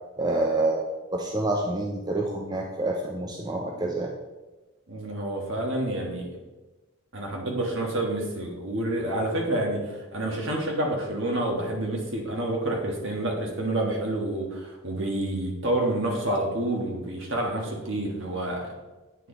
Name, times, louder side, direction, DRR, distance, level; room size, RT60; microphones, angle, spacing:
voice 1, 0.2-0.8 1.1-4.1, right 2 dB, 20° right, 1 dB, 0.5 m, -27 dB
voice 2, 4.9-6.3 7.1-18.7, right 1 dB, 60° right, 0 dB, 1.6 m, -28 dB
9.2 x 4.7 x 3.9 m, 1.1 s
head